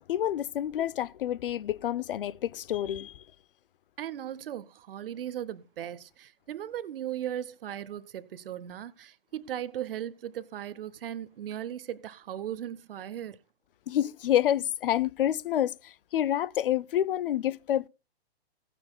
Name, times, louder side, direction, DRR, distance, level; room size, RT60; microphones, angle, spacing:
voice 1, 0.1-3.2 13.9-17.9, left 11 dB, 55° left, 0.5 m, -28 dB
voice 2, 4.0-13.4, right 11 dB, 60° right, 0.8 m, -37 dB
17.0 x 9.9 x 2.2 m
hypercardioid pair, 130°, 33 cm